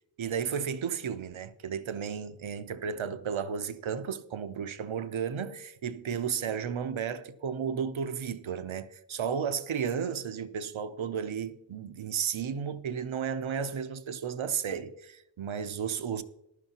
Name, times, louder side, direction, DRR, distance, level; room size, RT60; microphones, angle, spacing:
voice 1, 0.2-16.2, right 7 dB, 90° right, 0.7 m, -33 dB
14.5 x 11.5 x 2.9 m
wide cardioid pair, 70°, 46 cm